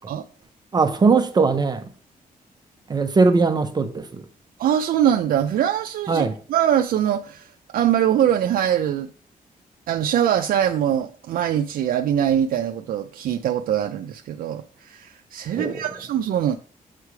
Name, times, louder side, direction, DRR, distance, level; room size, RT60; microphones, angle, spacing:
voice 1, 0.7-1.9 2.9-4.3 6.1-6.4 15.6-15.8, right 4 dB, 30° right, 0.6 m, -20 dB
voice 2, 4.6-9.1 9.9-16.6, right 10 dB, 80° right, 0.4 m, -22 dB
8.2 x 3.2 x 4.6 m
wide cardioid pair, 170°, 15 cm